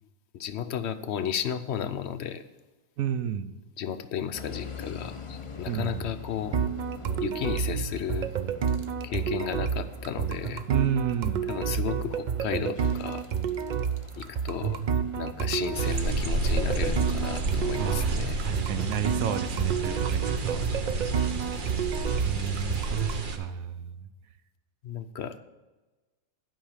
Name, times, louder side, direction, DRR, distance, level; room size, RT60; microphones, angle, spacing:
voice 1, 0.3-2.4 3.8-6.6 7.2-8.3 9.0-10.6 11.5-13.2 14.2-14.8 15.2-18.4 21.0-21.4 24.8-25.4, left 8 dB, 60° left, 10 dB, 0.8 m, -33 dB
voice 2, 3.0-3.5 5.7-6.1 10.7-11.5 17.8-20.6 22.2-23.0 23.3-24.1, right 9 dB, 85° right, 11 dB, 1.1 m, -31 dB
sound 1, 4.3-20.9, left 5 dB, 30° left, 0.6 m, -45 dB
sound 2, 6.5-23.2, right 7 dB, 65° right, 0.4 m, -30 dB
sound 3, 15.7-23.4, right 2 dB, 45° right, 0.9 m, -31 dB
12.0 x 5.4 x 7.3 m, 1.2 s
omnidirectional pair, 1.4 m